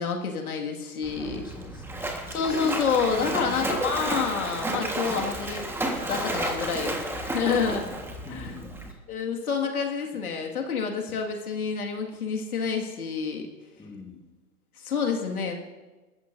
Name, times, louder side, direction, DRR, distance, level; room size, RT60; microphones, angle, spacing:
voice 1, 0.0-1.4 2.3-5.7 6.1-7.0 7.3-7.8 9.1-13.5 14.8-15.5, left 6 dB, 85° left, 1 dB, 2.2 m, -28 dB
Splash splatter, 1.0-8.9, right 1 dB, 5° right, 1.5 m, -32 dB
voice 2, 1.1-2.1 3.2-3.7 7.6-8.0 8.2-9.0 13.8-14.3, left 4 dB, 10° left, 0 dB, 2.1 m, -44 dB
20.5 x 14.0 x 2.7 m, 1.2 s
hypercardioid pair, 125°, 43 cm